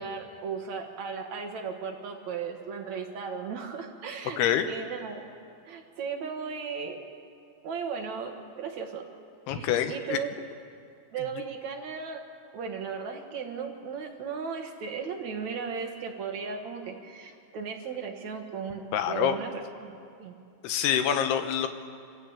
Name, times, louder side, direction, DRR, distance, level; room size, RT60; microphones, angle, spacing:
voice 1, 0.0-4.4 4.7-5.3 5.6-7.1 7.6-9.0 9.5-10.3 11.1-12.2 12.5-19.9 20.2-20.4, right 6 dB, 55° right, 3 dB, 2.3 m, -36 dB
voice 2, 4.4-4.7 9.5-10.2 18.9-19.4 20.6-21.7, left 9 dB, 85° left, 8 dB, 3.1 m, -26 dB
25.5 x 14.5 x 8.8 m, 2.4 s
omnidirectional pair, 4.6 m